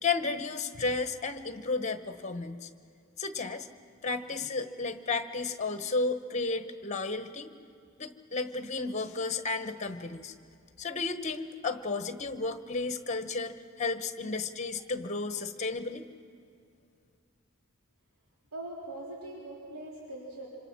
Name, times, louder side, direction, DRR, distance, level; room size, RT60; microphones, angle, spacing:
voice 1, 0.0-2.7 3.2-3.7 4.0-7.5 8.0-10.3 10.8-16.0, left 3 dB, 35° left, 10 dB, 1.1 m, -33 dB
voice 2, 18.5-20.5, right 1 dB, 90° right, -4 dB, 4.0 m, -41 dB
26.0 x 26.0 x 6.2 m, 2.4 s
head